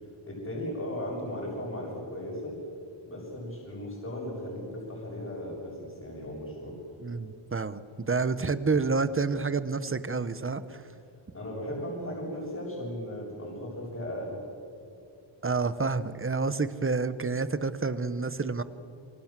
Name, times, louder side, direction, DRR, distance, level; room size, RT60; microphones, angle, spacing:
voice 1, 0.3-2.6 3.1-6.8 11.3-14.4, left 1 dB, 30° left, -5 dB, 7.4 m, -36 dB
voice 2, 7.0-7.8 8.1-10.8 15.4-18.6, right 4 dB, 25° right, 13 dB, 1.1 m, -29 dB
28.0 x 25.0 x 7.6 m, 2.5 s
wide cardioid pair, 135°, 48 cm